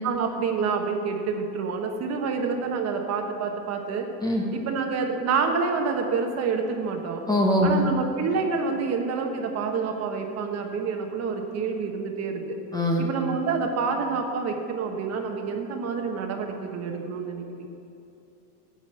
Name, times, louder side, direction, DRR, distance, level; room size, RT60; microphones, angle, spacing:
voice 1, 0.0-4.1 4.5-7.2 7.6-12.6 13.0-17.7, right 5 dB, 35° right, 4 dB, 1.2 m, -28 dB
voice 2, 7.3-7.8 12.7-13.0, left 1 dB, 10° left, -1 dB, 0.9 m, -22 dB
10.0 x 7.9 x 6.4 m, 2.9 s
supercardioid pair, 125°, 47 cm